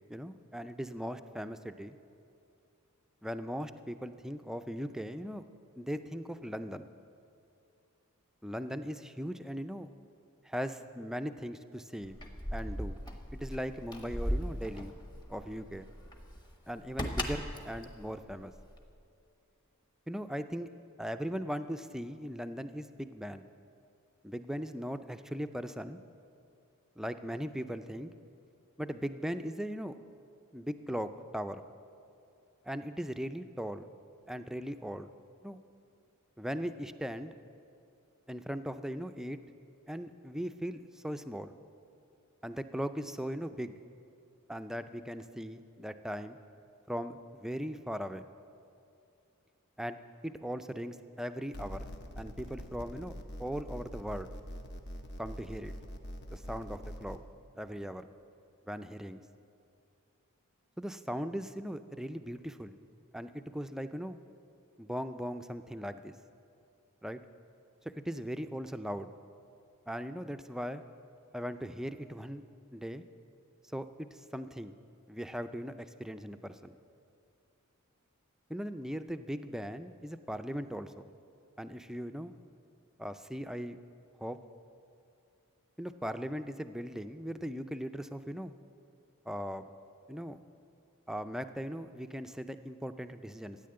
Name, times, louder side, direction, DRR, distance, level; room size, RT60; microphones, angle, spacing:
voice 1, 0.1-2.0 3.2-5.4 5.8-6.9 8.4-9.9 10.4-12.2 12.5-13.0 13.3-14.9 15.3-15.9 16.7-18.5 20.1-20.7 21.0-23.5 24.2-26.0 27.0-28.1 28.8-30.0 30.5-31.6 32.6-33.9 34.3-35.1 35.4-35.6 36.4-37.3 38.3-39.4 39.9-41.5 42.4-43.8 44.5-46.4 46.9-48.2 49.8-50.0 50.2-51.9 52.2-53.1 53.4-54.3 55.2-55.7 56.3-57.2 57.6-58.1 58.7-59.2 60.8-62.8 63.1-64.2 64.8-66.1 67.0-67.2 68.0-69.1 69.9-70.8 71.3-72.4 72.7-73.0 73.7-74.7 75.1-76.7 78.5-81.1 81.6-82.3 83.0-83.8 84.2-84.4 85.8-88.5 89.3-89.7 90.1-90.4 91.1-93.6, equal, ahead, 9 dB, 0.4 m, -39 dB
Keys jangling, 12.0-19.0, equal, 20° left, 1.1 m, -38 dB
sound 1, 51.5-57.2, equal, 50° left, 1.0 m, -44 dB
14.0 x 9.4 x 7.7 m, 2.5 s
head